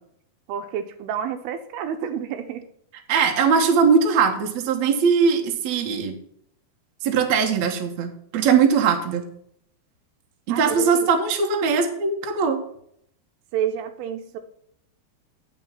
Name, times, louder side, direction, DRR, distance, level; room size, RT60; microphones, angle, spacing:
voice 1, 0.5-2.7 10.5-11.1 13.5-14.4, right 8 dB, 80° right, 8 dB, 2.6 m, -29 dB
voice 2, 3.1-6.2 7.0-9.3 10.5-12.6, right 6 dB, 65° right, 4 dB, 1.9 m, -20 dB
9.4 x 5.9 x 5.7 m, 0.69 s
omnidirectional pair, 4.6 m